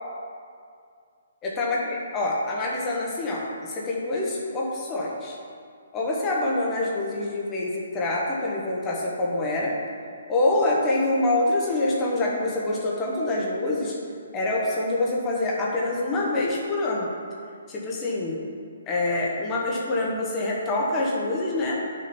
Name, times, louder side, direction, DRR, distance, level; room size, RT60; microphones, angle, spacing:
voice 1, 1.4-5.4 5.9-9.7 10.3-14.0 14.3-17.1 17.7-18.4 18.9-21.8, left 2 dB, 15° left, -4 dB, 1.3 m, -26 dB
9.7 x 6.5 x 4.4 m, 2.2 s
hypercardioid pair, 170°, 0 cm